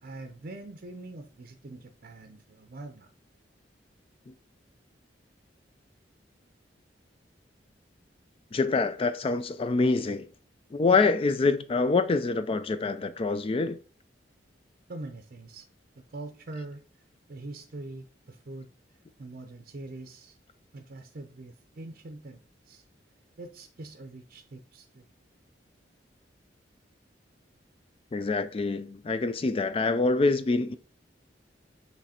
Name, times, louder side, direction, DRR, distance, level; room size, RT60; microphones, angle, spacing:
voice 1, 0.0-3.1 14.9-15.7 16.1-20.4 20.7-22.8 23.4-25.1, right 2 dB, 50° right, 0.6 m, -43 dB
voice 2, 8.5-10.3 10.7-13.8 28.1-30.8, left 3 dB, 30° left, 0.3 m, -25 dB
7.5 x 3.2 x 4.2 m
head